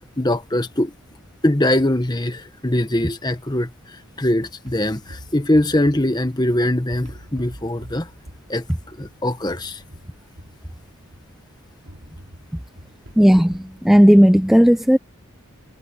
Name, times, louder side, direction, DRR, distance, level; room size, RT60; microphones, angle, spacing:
voice 1, 0.2-0.9 1.4-3.7 4.2-8.1 8.5-9.8, left 1 dB, 20° left, 1.2 m, -22 dB
sound 1, 4.7-6.6 6.9-11.4 11.9-13.8, equal, 70° right, 3.4 m, -44 dB
voice 2, 13.2-15.0, equal, ahead, 0.3 m, -13 dB
head